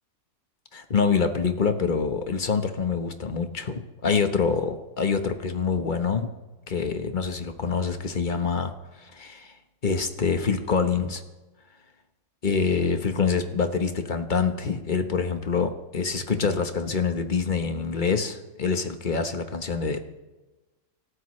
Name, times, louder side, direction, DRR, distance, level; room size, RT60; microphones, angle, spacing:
voice 1, 0.7-6.3 6.7-8.7 9.0-9.5 9.8-11.2 12.4-20.0, left 5 dB, 30° left, 7 dB, 1.1 m, -26 dB
26.0 x 13.0 x 3.2 m, 1.1 s
omnidirectional pair, 1.9 m